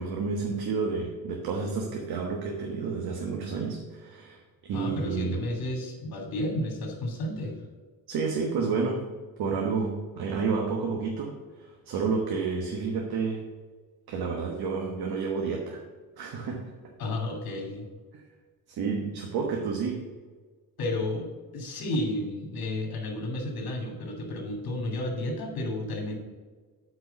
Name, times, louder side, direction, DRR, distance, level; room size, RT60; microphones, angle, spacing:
voice 1, 0.0-5.4 8.1-9.1 9.4-13.4 14.1-15.8 16.2-16.7 18.1-18.2 18.7-20.0, right 5 dB, 75° right, 1 dB, 1.3 m, -30 dB
voice 2, 4.7-7.5 17.0-17.9 20.8-26.2, left 1 dB, 70° left, 1 dB, 2.7 m, -32 dB
8.4 x 4.7 x 7.0 m, 1.4 s
cardioid pair, 130°, 37 cm